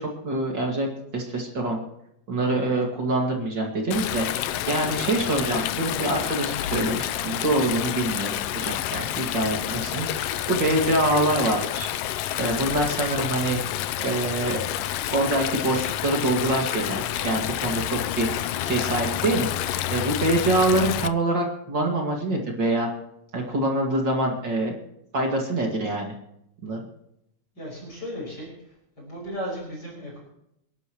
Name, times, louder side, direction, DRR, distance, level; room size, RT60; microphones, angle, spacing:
voice 1, 0.0-1.8 2.3-4.3 4.7-11.9 12.4-13.6 14.0-14.7 15.1-19.5 19.9-22.9 23.3-24.8 25.1-26.1 26.6-26.8, right 1 dB, 40° right, 0 dB, 2.6 m, -25 dB
Stream, 3.9-21.1, left 12 dB, 90° left, 1.3 m, -29 dB
voice 2, 27.5-28.5 29.0-30.2, equal, 30° left, -4 dB, 6.5 m, -36 dB
29.0 x 11.5 x 3.1 m, 0.79 s
omnidirectional pair, 3.5 m